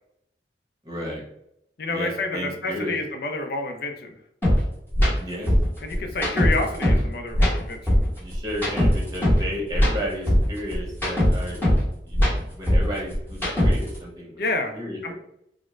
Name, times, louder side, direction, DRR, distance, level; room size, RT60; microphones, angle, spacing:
voice 1, 0.8-1.2 1.9-3.0 5.2-5.5 5.9-6.0 8.2-11.6 12.0-12.2 12.5-14.4 14.7-15.1, equal, 20° right, -3 dB, 0.9 m, -33 dB
voice 2, 1.8-4.1 5.8-8.0 14.4-15.1, left 2 dB, 60° left, 4 dB, 0.5 m, -29 dB
sound 1, 4.4-4.6 4.9-5.1 5.5-7.0 7.3-9.4 9.7-11.8 12.1-14.0, equal, 10° left, 1.1 m, -20 dB
3.7 x 2.1 x 3.1 m, 0.79 s
head